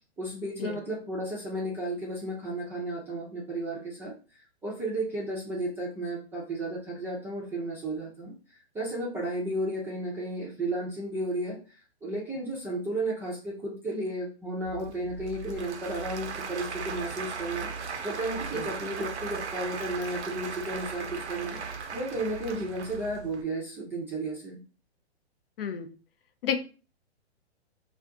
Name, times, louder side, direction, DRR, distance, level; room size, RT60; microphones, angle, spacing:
voice 1, 0.2-4.1 4.6-8.3 8.7-11.6 12.0-21.6 21.9-24.6, right 1 dB, 5° right, -5 dB, 0.5 m, -33 dB
Applause / Crowd, 14.6-23.4, right 5 dB, 85° right, 0.7 m, -37 dB
voice 2, 25.6-25.9 26.4-26.6, left 8 dB, 60° left, 7 dB, 0.7 m, -30 dB
2.5 x 2.4 x 3.6 m, 0.35 s
hypercardioid pair, 130°, 33 cm